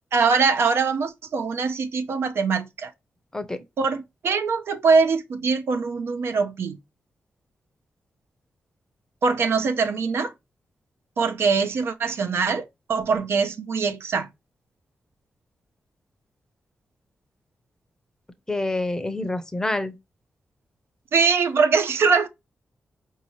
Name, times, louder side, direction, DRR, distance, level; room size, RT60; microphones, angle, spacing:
voice 1, 0.1-2.9 3.8-6.8 9.2-10.3 11.2-14.3 21.1-22.3, right 5 dB, 70° right, 0.7 m, -22 dB
voice 2, 18.5-19.9, left 2 dB, 15° left, 0.6 m, -27 dB
4.7 x 2.9 x 3.0 m
wide cardioid pair, 120°, 4 cm